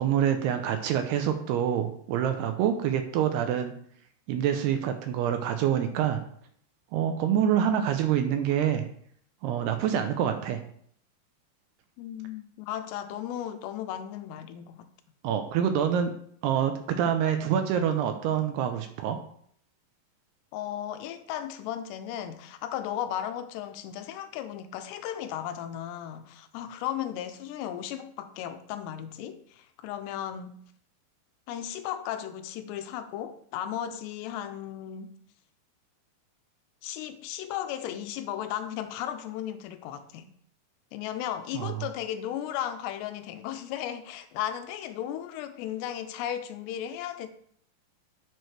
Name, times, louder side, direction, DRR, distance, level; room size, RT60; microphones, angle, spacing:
voice 1, 0.0-3.7 4.3-6.2 6.9-8.9 9.4-10.6 15.2-16.1 16.4-19.2 41.5-41.8, right 9 dB, 80° right, 2.5 m, -26 dB
voice 2, 12.0-14.9 20.5-30.6 31.5-35.1 36.8-40.3 40.9-47.3, left 10 dB, 80° left, 2.7 m, -35 dB
10.5 x 6.3 x 3.3 m
omnidirectional pair, 5.1 m